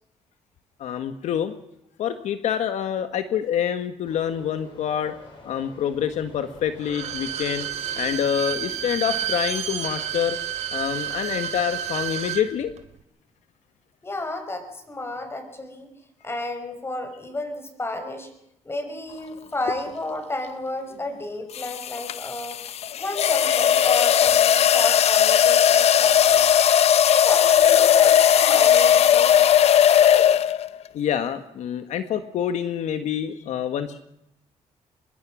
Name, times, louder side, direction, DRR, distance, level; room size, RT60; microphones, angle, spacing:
voice 1, 0.8-1.5 2.0-5.1 5.4-7.7 8.0-10.4 10.7-12.7 30.9-34.0, left 9 dB, 75° left, 9 dB, 1.7 m, -26 dB
sound 1, 4.0-9.3, left 3 dB, 45° left, 7.9 m, -47 dB
Bowed string instrument, 6.8-12.4 12.8-12.9, right 10 dB, 70° right, 2.9 m, -30 dB
voice 2, 14.0-15.9 16.2-18.3 18.6-22.6 23.0-26.5 27.1-29.4, left 2 dB, 20° left, 7 dB, 5.7 m, -32 dB
sound 2, 19.6-19.9 21.5-30.8, left 9 dB, 60° left, 0.9 m, -18 dB
25.0 x 22.0 x 6.3 m, 0.80 s
cardioid pair, 110°, 12 cm